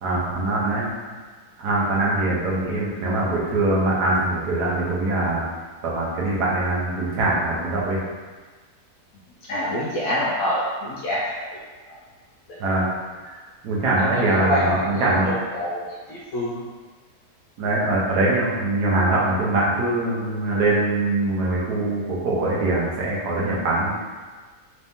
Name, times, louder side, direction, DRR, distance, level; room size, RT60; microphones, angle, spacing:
voice 1, 0.0-0.9 1.6-5.4 5.8-8.0 12.6-12.9 13.6-15.3 17.6-23.9, right 2 dB, 90° right, -5 dB, 1.4 m, -22 dB
voice 2, 9.4-11.6 11.9-12.0 12.5-12.6 13.9-16.6, left 1 dB, 70° left, -6 dB, 1.0 m, -27 dB
3.9 x 2.7 x 3.4 m, 1.4 s
omnidirectional pair, 1.6 m